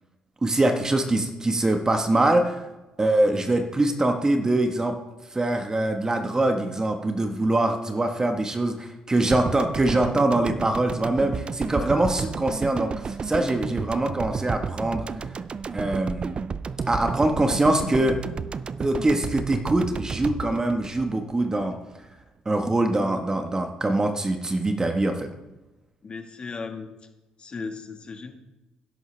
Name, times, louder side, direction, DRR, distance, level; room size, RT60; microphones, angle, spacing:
voice 1, 0.4-2.6 3.0-5.0 5.3-15.3 15.7-16.3 16.9-18.2 18.8-21.8 22.4-25.3, right 2 dB, 25° right, 6 dB, 1.4 m, -23 dB
sound 1, 9.3-21.6 21.9-22.0, right 5 dB, 40° right, 0.4 m, -32 dB
voice 2, 26.0-26.9 27.4-28.3, left 4 dB, 40° left, 5 dB, 1.7 m, -36 dB
13.0 x 11.0 x 3.4 m, 1.1 s
hypercardioid pair, 60°, 3 cm